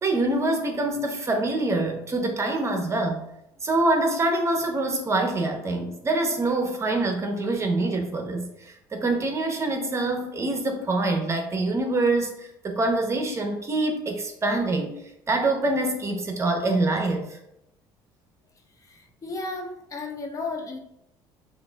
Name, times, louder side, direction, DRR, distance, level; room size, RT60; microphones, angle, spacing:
voice 1, 0.0-3.2 3.6-14.9 15.3-17.4, right 2 dB, 30° right, 3 dB, 0.8 m, -25 dB
voice 2, 18.8-20.8, left 3 dB, 35° left, 3 dB, 0.7 m, -34 dB
5.7 x 2.5 x 2.3 m, 0.82 s
supercardioid pair, 80°, 10 cm